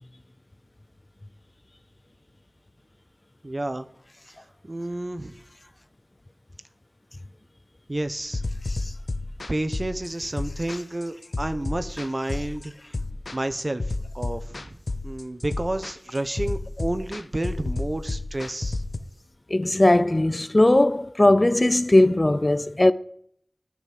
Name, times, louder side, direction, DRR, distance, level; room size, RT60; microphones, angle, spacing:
voice 1, 3.4-3.9 4.6-5.3 7.9-8.4 9.5-12.7 13.3-14.8 15.0-18.8, right 1 dB, 45° right, 0.9 m, -30 dB
sound 1, 8.3-19.0, left 2 dB, 80° left, 0.8 m, -31 dB
voice 2, 19.5-22.9, left 1 dB, 40° left, 0.5 m, -19 dB
10.5 x 6.1 x 7.7 m
wide cardioid pair, 55°, 0 cm